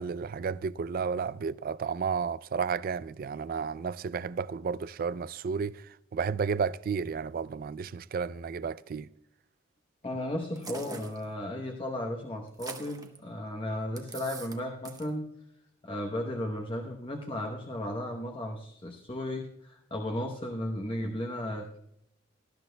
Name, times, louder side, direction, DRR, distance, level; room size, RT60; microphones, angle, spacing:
voice 1, 0.0-5.8 6.1-9.1, right 5 dB, 45° right, 0.3 m, -32 dB
voice 2, 10.0-15.3 15.8-21.8, left 1 dB, 25° left, 0.9 m, -35 dB
sound 1, 10.6-11.2 12.5-13.2 14.0-14.6 14.8-15.1, right 4 dB, 20° right, 0.9 m, -43 dB
18.5 x 13.0 x 2.2 m
head